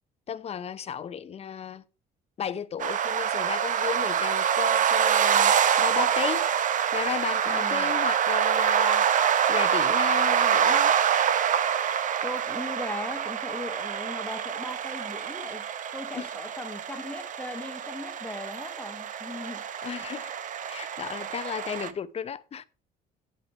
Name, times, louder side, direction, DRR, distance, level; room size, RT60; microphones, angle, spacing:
voice 1, 0.3-1.8 2.4-6.5 6.9-10.9 16.1-16.3 19.8-20.3 20.7-22.7, left 8 dB, 35° left, 0.8 m, -34 dB
sound 1, 2.8-21.9, right 8 dB, 50° right, 0.9 m, -26 dB
voice 2, 7.4-7.9 12.2-15.7 15.9-19.6, left 2 dB, 10° left, 1.4 m, -38 dB
8.9 x 8.4 x 4.4 m
cardioid pair, 110°, 17 cm